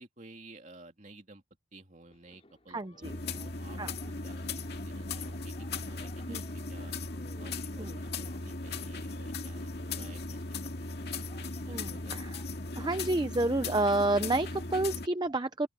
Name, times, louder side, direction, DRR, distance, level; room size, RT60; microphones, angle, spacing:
voice 1, 0.0-1.4 1.7-5.5 5.8-6.9 7.4-10.4 10.7-11.0 11.3-12.2, right 2 dB, 35° right, 2.9 m, -54 dB
sound 1, 2.0-13.2, left 2 dB, 30° left, 4.5 m, -59 dB
voice 2, 2.7-3.2 3.8-3.9 6.3-6.4 7.8-8.0 11.7-12.4 12.8-15.7, right 2 dB, 20° right, 0.7 m, -30 dB
sound 2, 3.0-15.1, left 3 dB, 55° left, 2.3 m, -38 dB
open air
head